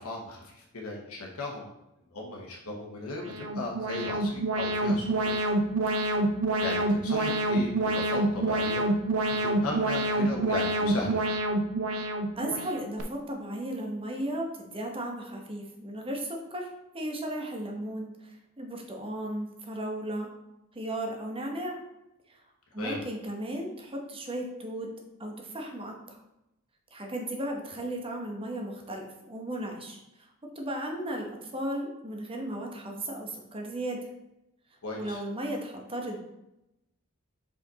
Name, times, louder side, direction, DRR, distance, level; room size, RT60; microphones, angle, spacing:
voice 1, 0.0-1.7 2.1-5.4 6.6-8.8 9.4-11.2 22.8-23.0 34.8-35.2, left 2 dB, 90° left, -1 dB, 1.1 m, -36 dB
Alarm, 3.1-13.0, right 2 dB, 80° right, 0.7 m, -27 dB
voice 2, 12.4-16.7 16.9-20.3 20.7-21.8 22.3-22.4 22.7-24.9 25.2-26.2 26.9-30.0 30.5-34.0 35.0-36.2, right 1 dB, 25° right, 1 dB, 1.0 m, -35 dB
5.1 x 5.1 x 4.0 m, 0.90 s
head